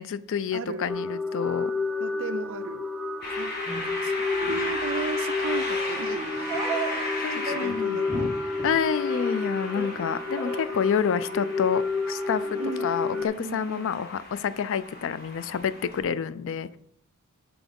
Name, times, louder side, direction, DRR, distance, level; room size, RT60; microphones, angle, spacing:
voice 1, 0.0-1.7 3.3-3.4 7.2-8.0 8.6-16.8, left 7 dB, 60° left, 0.4 m, -28 dB
voice 2, 0.5-0.9 2.0-2.9 3.4-3.6 3.8-6.6 7.3-8.3 12.6-14.0, right 5 dB, 60° right, 0.5 m, -36 dB
sound 1, 0.9-13.3, left 4 dB, ahead, 0.5 m, -30 dB
sound 2, 3.2-16.0, left 1 dB, 45° left, 1.5 m, -36 dB
sound 3, 3.7-3.8 4.4-4.6 5.3-5.5 5.8-7.1 7.4-7.8 8.0-8.3 8.5-8.7 9.0-9.4 9.7-10.0 10.4-10.7, right 3 dB, 15° right, 1.6 m, -35 dB
6.1 x 4.7 x 5.2 m
head